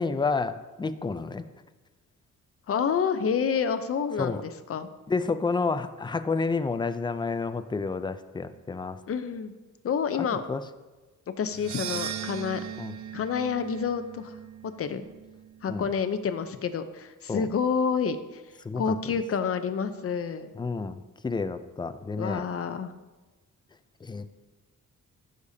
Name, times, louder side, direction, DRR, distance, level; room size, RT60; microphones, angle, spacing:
voice 1, 0.0-1.4 4.2-4.4 5.1-9.0 10.5-10.6 12.8-12.9 15.7-15.9 17.3-17.5 18.6-19.0 20.5-22.4 24.0-24.2, left 4 dB, 15° left, 10 dB, 0.3 m, -30 dB
voice 2, 2.7-4.9 9.1-9.5 9.8-10.4 11.4-12.6 13.1-14.4 14.8-15.1 15.6-18.4 18.8-20.5 22.2-22.9, left 6 dB, 45° left, 10 dB, 0.6 m, -28 dB
sound 1, 11.5-15.9, right 9 dB, 65° right, 0.5 m, -38 dB
15.0 x 6.6 x 2.7 m, 1.2 s
wide cardioid pair, 155°, 31 cm